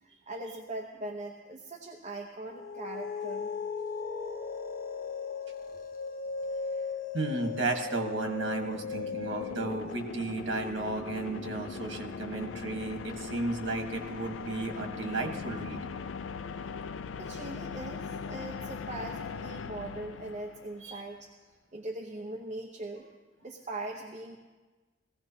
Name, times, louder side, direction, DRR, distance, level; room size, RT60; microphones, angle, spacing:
voice 1, 0.0-3.5 17.2-21.3 21.7-23.1 23.4-24.4, right 2 dB, 40° right, 0 dB, 1.0 m, -40 dB
sound 1, 2.5-15.3, left 5 dB, 50° left, 0.8 m, -39 dB
voice 2, 7.1-15.8 20.8-21.0, right 2 dB, 80° right, 3 dB, 1.6 m, -34 dB
sound 2, 7.9-20.9, left 5 dB, 85° left, 0.4 m, -41 dB
18.5 x 15.0 x 2.9 m, 1.3 s
head